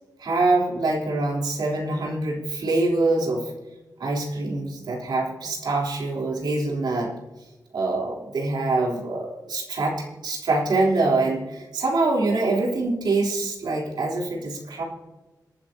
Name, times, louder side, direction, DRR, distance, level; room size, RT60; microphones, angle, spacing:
voice 1, 0.2-3.5 4.0-7.1 7.7-14.8, right 2 dB, 90° right, -2 dB, 3.6 m, -24 dB
26.5 x 9.6 x 2.8 m, 1.2 s
cardioid pair, 75°, 7 cm